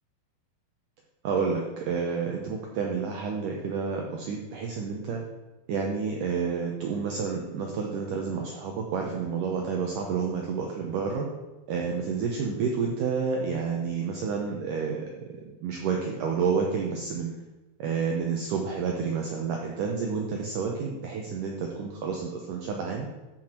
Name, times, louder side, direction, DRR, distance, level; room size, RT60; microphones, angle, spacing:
voice 1, 1.2-5.2 5.7-11.3 11.7-15.3 15.6-17.3 17.8-23.1, right 5 dB, 85° right, 1 dB, 1.9 m, -29 dB
14.0 x 6.0 x 4.5 m, 1.1 s
omnidirectional pair, 5.0 m